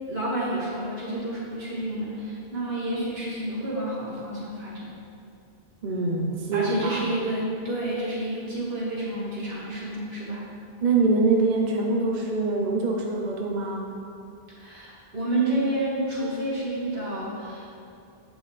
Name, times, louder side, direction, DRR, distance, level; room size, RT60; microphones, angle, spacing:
voice 1, 0.1-4.9 6.5-10.4 14.5-17.7, right 1 dB, 75° right, -8 dB, 2.2 m, -29 dB
voice 2, 5.8-7.0 10.8-13.9, right 3 dB, 50° right, -1 dB, 0.8 m, -24 dB
8.6 x 6.2 x 3.2 m, 2.5 s
omnidirectional pair, 1.1 m